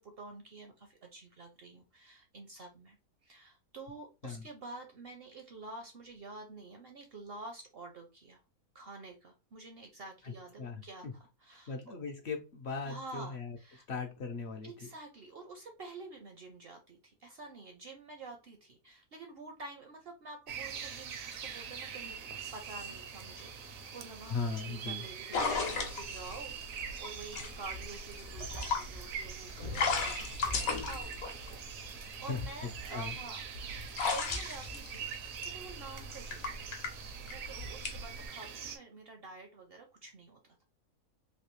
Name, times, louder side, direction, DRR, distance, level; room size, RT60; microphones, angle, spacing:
voice 1, 0.0-3.0 3.2-8.4 8.7-11.9 12.8-13.8 14.6-23.5 23.9-31.1 32.2-36.9 37.2-40.6, right 2 dB, 60° right, 4 dB, 0.6 m, -49 dB
voice 2, 10.6-11.1 11.7-13.6 13.9-14.7 24.3-25.0 32.3-32.4 32.9-33.1, left 4 dB, 60° left, 3 dB, 0.7 m, -38 dB
sound 1, 20.5-38.8, right 7 dB, 75° right, 1.0 m, -44 dB
sound 2, 25.3-32.0 32.6-38.2, left 4 dB, 80° left, 1.2 m, -36 dB
Drum kit / Snare drum, 28.5-29.1 29.5-29.6 29.8-31.0 31.4-31.6 31.9-32.9 33.3-33.4 33.7-34.9 35.2-36.2, equal, 40° left, 0.4 m, -48 dB
3.2 x 2.6 x 3.0 m, 0.29 s
omnidirectional pair, 1.5 m